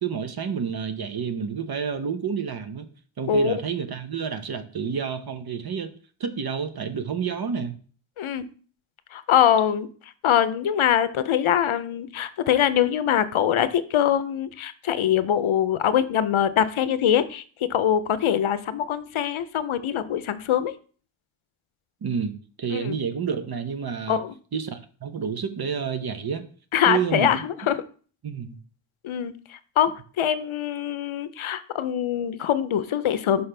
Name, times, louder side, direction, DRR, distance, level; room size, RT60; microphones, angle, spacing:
voice 1, 0.0-2.9 3.2-5.9 6.2-7.8 22.0-24.2 24.5-26.4 26.9-27.4 28.2-28.6, right 6 dB, 50° right, 10 dB, 0.7 m, -29 dB
voice 2, 3.3-3.6 8.2-8.5 9.1-9.9 10.2-17.4 17.7-20.7 22.7-23.0 24.1-24.3 26.7-27.8 29.0-29.9 30.2-33.5, left 9 dB, 75° left, 13 dB, 0.6 m, -23 dB
5.7 x 5.6 x 3.3 m, 0.41 s
wide cardioid pair, 135°, 49 cm